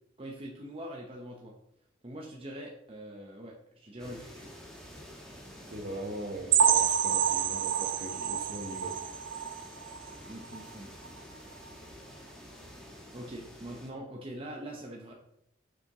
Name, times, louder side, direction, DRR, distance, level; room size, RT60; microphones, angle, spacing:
voice 1, 0.2-1.5 2.0-4.6 10.3-10.9 13.1-15.1, right 1 dB, 25° right, 0.8 m, -43 dB
sound 1, 4.0-13.9, equal, 5° left, 1.2 m, -50 dB
voice 2, 5.7-9.0, right 1 dB, 45° right, 1.1 m, -40 dB
sound 2, 6.5-10.1 10.5-10.7 11.1-11.2 11.6-11.7, right 8 dB, 65° right, 0.5 m, -28 dB
7.1 x 6.3 x 3.0 m
head